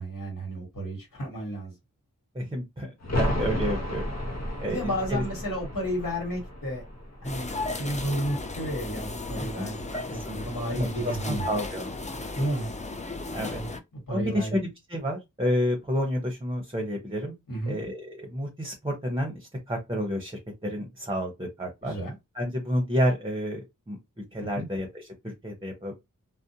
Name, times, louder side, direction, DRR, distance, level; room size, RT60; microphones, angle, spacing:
voice 1, 0.0-1.7 4.7-6.8 7.2-11.4 12.3-12.7 13.5-13.7 13.9-14.6 17.5-17.8 21.8-22.1 24.4-24.7, equal, 70° left, 1.4 m, -32 dB
voice 2, 2.3-4.0 4.6-5.2 9.6-9.7 10.1-10.4 10.7-11.9 13.3-13.6 14.1-17.3 17.7-22.0 22.4-24.0 24.3-26.0, equal, 15° right, 0.7 m, -30 dB
sound 1, 3.0-8.6 8.9-9.0, left 1 dB, 50° left, 0.8 m, -33 dB
sound 2, 7.2-13.8, left 2 dB, 20° left, 0.4 m, -35 dB
2.5 x 2.1 x 2.7 m
wide cardioid pair, 60°, 33 cm